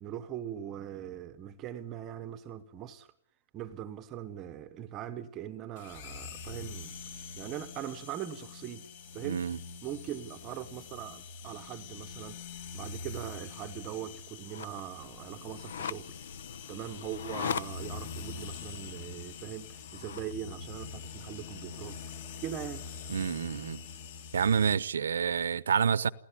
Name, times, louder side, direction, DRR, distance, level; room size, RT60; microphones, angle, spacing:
voice 1, 0.0-3.1 3.5-6.9 7.4-8.9 9.1-9.4 9.8-12.4 12.7-16.1 16.7-22.0 22.4-22.8, right 10 dB, 15° right, 1.0 m, -41 dB
sound 1, 5.8-24.8, left 5 dB, 35° left, 2.4 m, -45 dB
voice 2, 9.2-9.6 23.1-23.8 24.3-26.1, right 7 dB, 80° right, 1.0 m, -28 dB
sound 2, 14.5-20.3, left 7 dB, 60° left, 1.0 m, -41 dB
28.5 x 17.0 x 10.0 m
hypercardioid pair, 175°, 0 cm